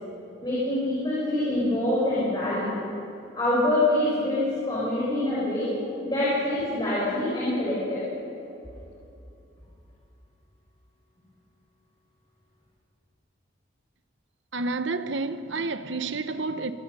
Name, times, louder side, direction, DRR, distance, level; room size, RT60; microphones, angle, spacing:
voice 1, 0.4-2.8 3.3-5.7 6.0-8.1, left 1 dB, 20° left, 6.1 m, -25 dB
voice 2, 14.5-16.7, right 3 dB, 70° right, 1.0 m, -29 dB
25.0 x 21.5 x 5.6 m
head